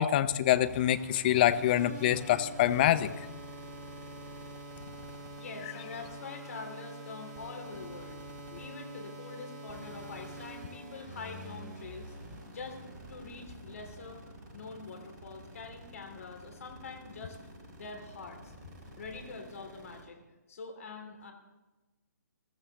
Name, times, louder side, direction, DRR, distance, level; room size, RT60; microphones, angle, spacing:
voice 1, 0.0-3.1, left 12 dB, 30° left, 11 dB, 0.6 m, -25 dB
sound 1, 0.5-20.0, right 1 dB, 25° right, 3.8 m, -46 dB
voice 2, 5.4-8.2 8.5-12.1 12.5-12.8 13.1-14.2 14.5-17.4 17.8-18.5 19.0-20.2 20.5-21.3, left 4 dB, 50° left, 3 dB, 2.9 m, -44 dB
22.5 x 13.5 x 3.5 m, 1.1 s
figure-of-eight pair, 135°, 10 cm